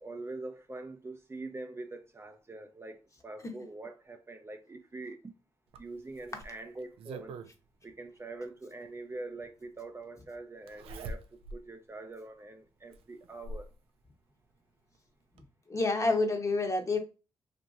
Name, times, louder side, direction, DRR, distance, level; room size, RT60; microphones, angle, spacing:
voice 1, 0.0-5.3 5.8-7.3 7.8-11.2 11.5-13.7, right 2 dB, 25° right, 0.5 m, -44 dB
Zipper (clothing), 5.7-7.5 8.9-9.0 10.7-11.6 12.1-12.2 12.9-13.7 14.9-15.0 15.4-15.5, right 2 dB, 80° right, 0.4 m, -43 dB
voice 2, 15.7-17.0, left 3 dB, 35° left, 0.9 m, -28 dB
2.9 x 2.7 x 2.4 m
supercardioid pair, 55°, 10 cm